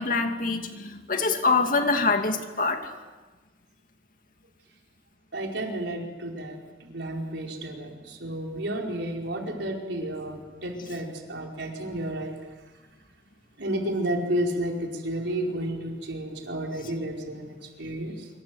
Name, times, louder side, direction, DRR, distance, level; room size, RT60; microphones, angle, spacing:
voice 1, 0.0-2.9, left 4 dB, 50° left, 5 dB, 2.3 m, -25 dB
voice 2, 5.3-12.4 13.6-18.3, right 1 dB, 85° right, 1 dB, 4.8 m, -31 dB
25.5 x 25.0 x 7.9 m, 1.3 s
head